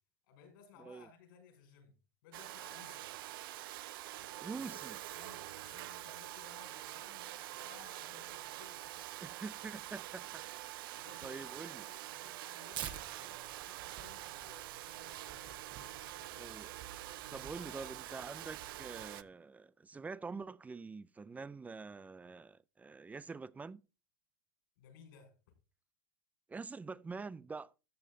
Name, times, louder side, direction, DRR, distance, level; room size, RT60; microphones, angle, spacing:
voice 1, 0.3-1.9 2.2-3.1 4.5-4.8 5.1-9.2 10.9-16.6 17.3-18.0 24.8-25.3, left 6 dB, 75° left, 5.7 m, -60 dB
Domestic sounds home sounds, 2.3-19.2, right 16 dB, 80° right, 0.6 m, -46 dB
voice 2, 4.4-5.0 9.2-10.4 10.9-11.8 16.4-16.7 17.3-23.8 26.5-27.7, right 4 dB, 15° right, 0.5 m, -46 dB
Tearing, 12.7-19.2, right 9 dB, 40° right, 1.7 m, -51 dB
13.5 x 7.4 x 3.8 m
supercardioid pair, 120°, 12 cm